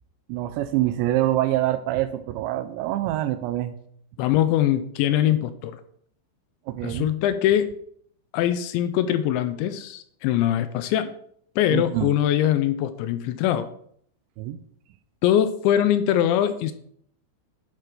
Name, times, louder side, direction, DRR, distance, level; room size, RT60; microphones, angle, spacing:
voice 1, 0.3-3.7 6.7-7.1 11.7-12.1 14.4-14.6, right 14 dB, 85° right, 10 dB, 2.7 m, -25 dB
voice 2, 4.2-5.8 6.8-7.7 8.3-11.1 11.6-13.7 15.2-16.7, left 11 dB, 80° left, 11 dB, 2.8 m, -22 dB
10.5 x 6.1 x 5.0 m, 0.66 s
omnidirectional pair, 5.5 m